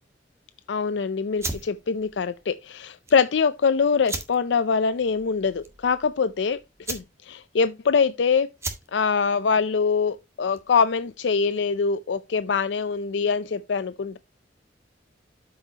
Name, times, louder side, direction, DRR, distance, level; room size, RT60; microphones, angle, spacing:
voice 1, 0.7-6.6 6.9-8.5 8.9-14.2, left 5 dB, 70° left, 0.5 m, -24 dB
sound 1, 1.3-10.8, right 2 dB, 15° right, 1.6 m, -39 dB
13.0 x 5.6 x 2.8 m
head